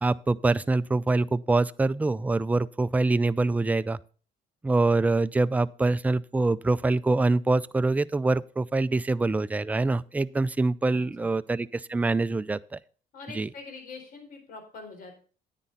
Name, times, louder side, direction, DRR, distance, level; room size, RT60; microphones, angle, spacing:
voice 1, 0.0-4.0 4.6-12.8 13.4-13.5, right 3 dB, 10° right, 0.3 m, -25 dB
voice 2, 10.9-11.4 13.1-15.1, left 4 dB, 60° left, 4.1 m, -44 dB
9.8 x 9.1 x 3.9 m
cardioid pair, 110°, 17 cm